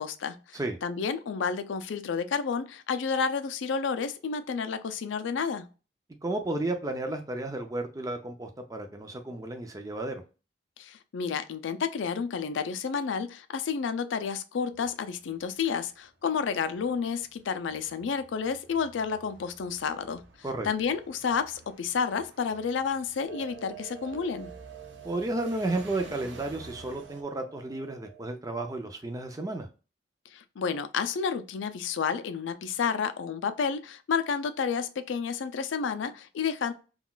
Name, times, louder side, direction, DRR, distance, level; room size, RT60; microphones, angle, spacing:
voice 1, 0.0-5.7 10.8-20.2 20.6-24.5 30.3-36.7, left 6 dB, 75° left, 0.4 m, -30 dB
voice 2, 6.2-10.1 20.4-20.7 25.0-29.7, right 2 dB, 20° right, 0.4 m, -32 dB
sound 1, 14.7-27.2, right 2 dB, 65° right, 0.6 m, -52 dB
Clock, 23.3-28.2, right 11 dB, 20° left, 1.7 m, -47 dB
3.7 x 2.3 x 2.3 m
head